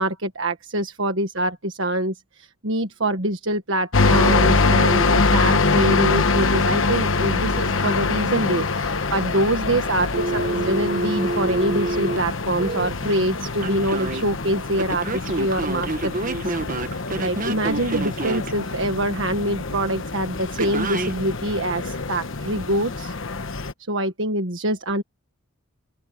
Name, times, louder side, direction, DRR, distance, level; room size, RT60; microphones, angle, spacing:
voice 1, 0.0-16.5 16.8-23.1 23.9-25.0, right 1 dB, 60° right, 1.6 m, -25 dB
sound 1, 3.9-23.7, left 3 dB, 60° left, 1.2 m, -24 dB
Telephone, 10.1-12.9 13.6-14.2 14.8-18.5 20.6-21.1, right 2 dB, 40° right, 1.3 m, -27 dB
open air
head